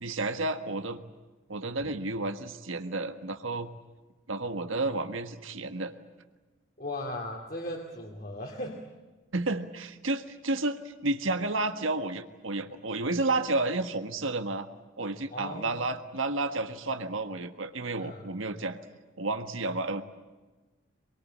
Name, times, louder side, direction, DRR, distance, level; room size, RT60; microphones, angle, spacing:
voice 1, 0.0-1.0 1.5-3.7 4.3-5.9 9.3-14.7 15.0-18.8 19.2-20.0, right 2 dB, 80° right, 7 dB, 1.5 m, -31 dB
voice 2, 6.8-8.9 15.3-15.9 18.0-18.3, left 1 dB, 45° left, 1 dB, 2.4 m, -37 dB
24.0 x 23.0 x 8.7 m, 1.2 s
head